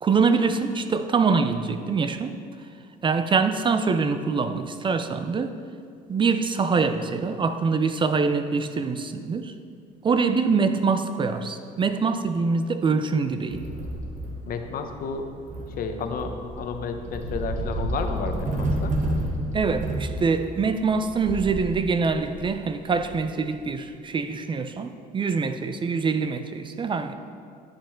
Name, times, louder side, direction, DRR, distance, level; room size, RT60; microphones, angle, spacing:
voice 1, 0.0-2.4 3.0-5.5 6.1-9.5 10.0-13.6 19.5-27.1, right 5 dB, 30° right, 9 dB, 0.4 m, -24 dB
sound 1, 13.5-23.7, right 1 dB, 45° right, 1.2 m, -31 dB
voice 2, 14.5-15.3 15.8-18.9, left 5 dB, 60° left, 5 dB, 0.8 m, -31 dB
10.5 x 5.2 x 4.4 m, 2.3 s
cardioid pair, 110°, 17 cm